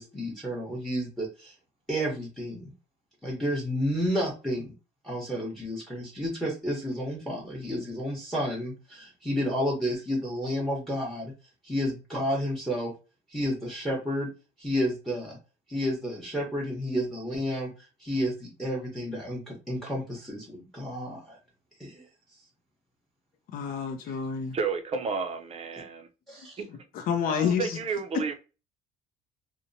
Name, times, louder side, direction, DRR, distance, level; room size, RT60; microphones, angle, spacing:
voice 1, 0.0-1.5 1.9-2.7 3.2-4.7 5.0-11.3 11.6-12.9 13.3-14.3 14.6-15.4 15.7-17.7 18.0-21.4 21.8-22.1 24.0-24.2 26.3-26.6, equal, ahead, 0.8 m, -31 dB
voice 2, 23.5-24.5 26.9-27.7, left 7 dB, 60° left, 0.5 m, -28 dB
voice 3, 24.5-26.1 26.6-26.7 27.3-28.3, right 5 dB, 40° right, 0.5 m, -31 dB
2.8 x 2.1 x 2.6 m
cardioid pair, 110°, 17 cm